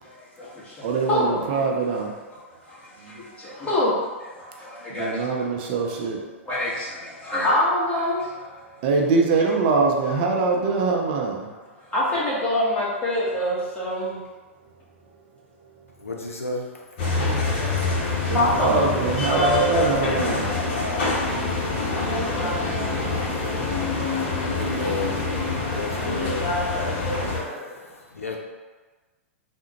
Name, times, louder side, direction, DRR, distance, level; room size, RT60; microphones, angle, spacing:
voice 1, 0.0-1.4 2.6-5.4 6.5-8.6 11.8-14.2 18.3-18.8 19.3-19.9 21.9-22.8 23.2-23.4 26.0-27.8, left 1 dB, 15° left, -7 dB, 1.1 m, -26 dB
voice 2, 0.8-2.1 3.0-3.2 4.9-6.3 8.6-11.5 14.6-14.7 15.6-16.1 18.3-20.9, right 4 dB, 45° right, 0 dB, 0.5 m, -24 dB
voice 3, 16.0-16.7 19.9-22.1 23.0-23.8 24.5-26.5 27.6-28.4, left 2 dB, 80° left, 1 dB, 0.4 m, -34 dB
sound 1, 17.0-27.4, left 3 dB, 50° left, 0.7 m, -26 dB
3.6 x 2.1 x 2.9 m, 1.3 s
figure-of-eight pair, 105°, 7 cm